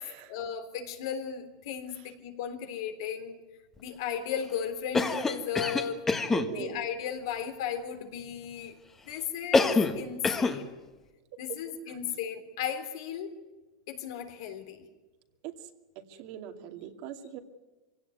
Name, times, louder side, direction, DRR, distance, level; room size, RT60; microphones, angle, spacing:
voice 1, 0.3-3.4 3.8-6.0 6.5-8.8 9.0-10.8 11.4-13.3 13.9-14.8, left 8 dB, 70° left, 6 dB, 3.5 m, -35 dB
Cough, 4.9-6.5 9.5-10.0 10.2-10.6, left 3 dB, 15° left, 1.6 m, -25 dB
voice 2, 6.3-6.8 15.4-15.5 16.2-17.4, right 9 dB, 55° right, 5 dB, 2.4 m, -40 dB
24.5 x 17.0 x 9.4 m, 1.2 s
supercardioid pair, 140°, 3 cm